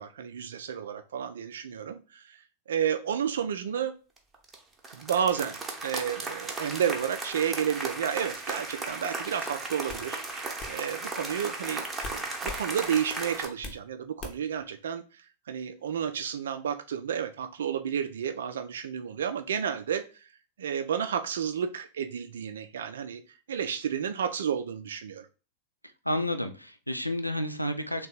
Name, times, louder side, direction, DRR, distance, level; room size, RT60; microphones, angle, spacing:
voice 1, 0.0-2.4 2.7-3.9 4.9-10.2 10.7-15.2 15.5-20.3 20.6-23.2 23.5-25.3, right 8 dB, 65° right, 8 dB, 0.3 m, -31 dB
sound 1, 4.2-4.6 4.8-13.5, right 3 dB, 15° right, 0.8 m, -36 dB
sound 2, 9.9-10.1 10.6-10.8 12.0-12.7 13.0-13.8 14.2-14.6, left 4 dB, 35° left, 0.8 m, -40 dB
voice 2, 26.1-28.1, left 1 dB, 90° left, 7 dB, 0.4 m, -30 dB
3.6 x 2.2 x 4.2 m, 0.35 s
figure-of-eight pair, 90°, 0 cm